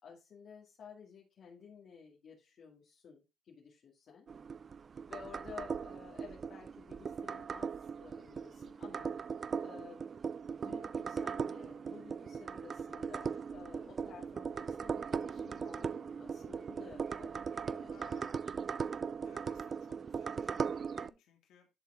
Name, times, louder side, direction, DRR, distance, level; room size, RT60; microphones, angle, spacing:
voice 1, 0.0-4.3 5.1-9.2 9.6-10.0 10.5-18.2, left 6 dB, 60° left, -3 dB, 2.2 m, -54 dB
sound 1, 4.3-21.1, right 6 dB, 45° right, 0.4 m, -39 dB
voice 2, 17.9-18.6 19.2-21.7, left 7 dB, 85° left, 2 dB, 2.8 m, -63 dB
11.0 x 4.2 x 3.7 m, 0.25 s
cardioid pair, 90°, 0 cm